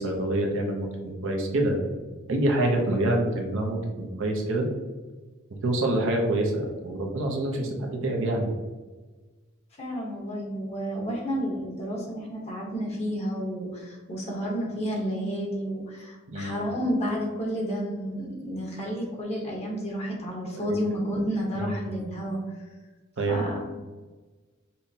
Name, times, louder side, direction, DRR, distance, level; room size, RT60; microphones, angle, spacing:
voice 1, 0.0-1.8 2.3-4.7 5.6-8.5 16.3-16.6 20.5-20.7 21.6-22.0 23.2-23.4, right 1 dB, 65° right, 1 dB, 0.7 m, -26 dB
voice 2, 9.8-22.4 23.3-23.6, equal, 30° left, -3 dB, 1.0 m, -31 dB
5.4 x 2.1 x 2.7 m, 1.3 s
head